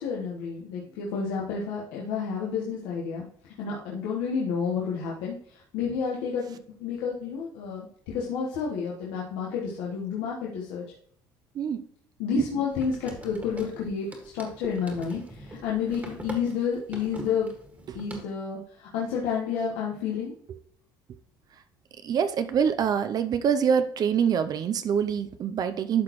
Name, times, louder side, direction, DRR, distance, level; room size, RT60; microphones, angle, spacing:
voice 1, 0.0-3.2 3.6-10.8 12.2-17.5 17.9-20.3, left 6 dB, 90° left, -4 dB, 1.3 m, -30 dB
sound 1, 12.7-18.2, right 1 dB, 15° right, 1.8 m, -42 dB
voice 2, 22.0-26.0, right 7 dB, 45° right, 11 dB, 0.5 m, -25 dB
12.0 x 4.1 x 3.0 m, 0.65 s
cardioid pair, 110°, 9 cm